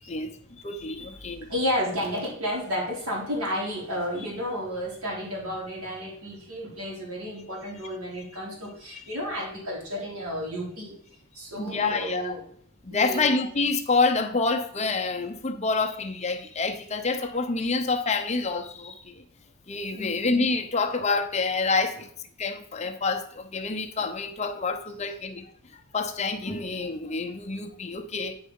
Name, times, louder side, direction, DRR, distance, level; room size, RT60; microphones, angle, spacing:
voice 1, 0.0-1.5 8.9-9.0 11.6-12.3 12.8-19.2 19.7-22.1 22.4-28.3, left 4 dB, 30° left, 0.7 m, -27 dB
voice 2, 1.5-11.0 11.4-12.4 12.9-13.2 19.9-20.1, equal, 75° right, 3.6 m, -32 dB
9.7 x 4.7 x 5.4 m
head